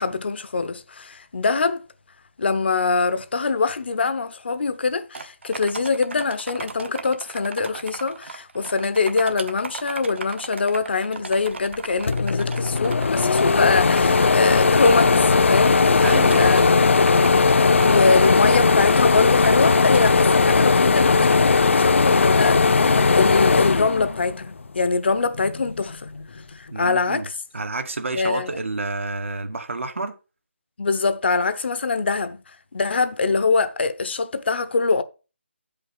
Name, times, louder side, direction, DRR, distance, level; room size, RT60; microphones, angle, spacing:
voice 1, 0.0-1.8 2.4-16.6 17.8-26.1 26.5-27.3 28.1-28.5 30.8-32.4 32.7-35.0, left 4 dB, 55° left, 0.9 m, -23 dB
sound 1, 5.1-13.4 14.0-20.6, right 4 dB, 65° right, 1.1 m, -37 dB
sound 2, 11.7-11.8 12.1-24.7 25.1-26.2, left 4 dB, 75° left, 0.6 m, -18 dB
voice 2, 16.0-16.5 26.7-27.3 27.5-30.2, right 3 dB, 85° right, 1.7 m, -29 dB
8.6 x 5.5 x 5.5 m
hypercardioid pair, 170°, 7 cm